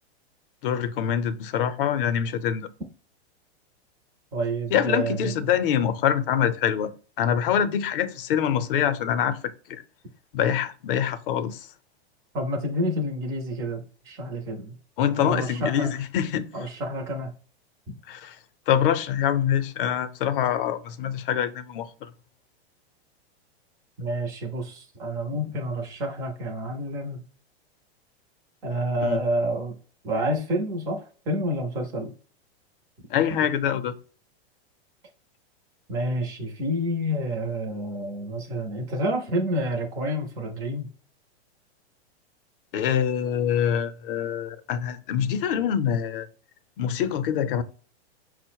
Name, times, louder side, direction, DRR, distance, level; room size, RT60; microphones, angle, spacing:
voice 1, 0.6-2.7 4.7-6.9 7.2-9.4 9.7-9.8 10.3-11.6 15.0-16.5 18.1-18.3 18.7-22.1 29.0-29.2 33.1-34.0 42.7-46.3 46.8-47.6, left 9 dB, 55° left, 0.6 m, -25 dB
voice 2, 4.3-5.5 12.3-14.7 15.2-15.9 16.5-17.3 24.0-27.2 28.6-29.7 30.0-32.1 35.9-40.9, equal, 10° right, 0.3 m, -29 dB
5.4 x 2.0 x 4.4 m
supercardioid pair, 155°, 33 cm